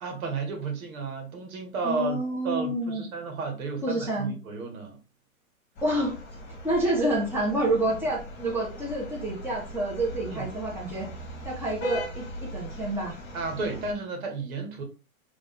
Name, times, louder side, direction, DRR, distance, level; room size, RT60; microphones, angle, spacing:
voice 1, 0.0-5.0 10.3-10.5 13.3-14.8, right 4 dB, 70° right, 1.5 m, -33 dB
voice 2, 1.8-3.0 3.8-4.3 5.8-6.1 6.6-11.1 11.4-13.2, right 1 dB, 5° right, 1.4 m, -28 dB
sound 1, 5.8-13.9, equal, 25° left, 1.6 m, -40 dB
4.0 x 2.9 x 3.6 m
hypercardioid pair, 135°, 42 cm